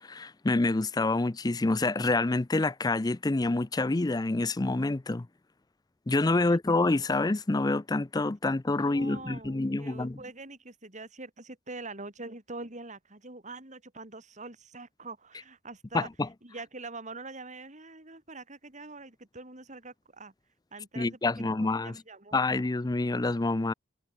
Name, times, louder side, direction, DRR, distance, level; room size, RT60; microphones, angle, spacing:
voice 1, 0.0-5.3 6.1-10.2 15.9-16.3 21.0-22.0 22.3-23.7, left 2 dB, 20° left, 0.5 m, -27 dB
voice 2, 8.8-16.1 16.4-20.3 20.7-22.5, right 3 dB, 35° right, 4.5 m, -44 dB
head